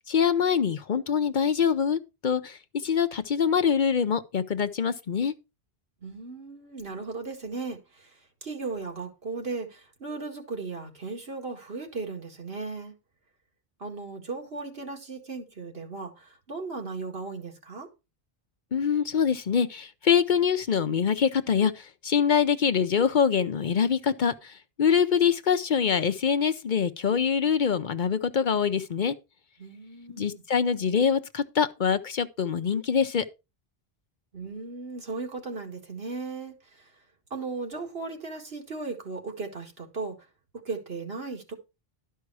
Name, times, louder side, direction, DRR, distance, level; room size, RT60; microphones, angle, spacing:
voice 1, 0.1-5.3 18.7-29.1 30.1-33.3, left 7 dB, 55° left, 0.7 m, -24 dB
voice 2, 6.0-12.9 13.8-17.9 29.6-30.4 34.3-36.9 37.3-40.2 40.5-41.5, right 3 dB, 75° right, 2.2 m, -36 dB
12.0 x 5.5 x 4.7 m
omnidirectional pair, 1.0 m